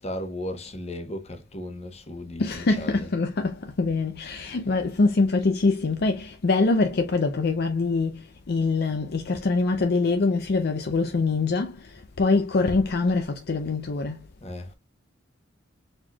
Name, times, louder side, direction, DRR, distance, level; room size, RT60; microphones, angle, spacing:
voice 1, 0.0-3.1 14.4-14.7, left 1 dB, 35° left, 1.0 m, -36 dB
voice 2, 2.4-14.2, left 3 dB, 55° left, 0.5 m, -24 dB
4.4 x 4.4 x 2.3 m
head